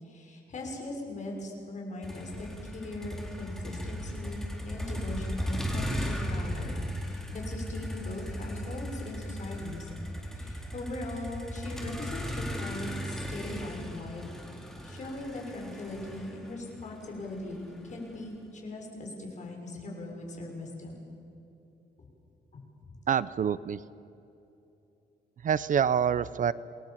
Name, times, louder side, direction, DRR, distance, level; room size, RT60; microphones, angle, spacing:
voice 1, 0.0-9.9 10.4-21.1 22.0-22.1 22.5-22.6 22.9-23.0, left 2 dB, 45° left, 0 dB, 6.4 m, -40 dB
Motor vehicle (road), 2.0-18.1, equal, 5° left, 4.0 m, -37 dB
voice 2, 23.1-23.8 25.4-26.5, right 8 dB, 50° right, 17 dB, 0.6 m, -26 dB
28.0 x 20.0 x 7.4 m, 2.9 s
cardioid pair, 135°, 17 cm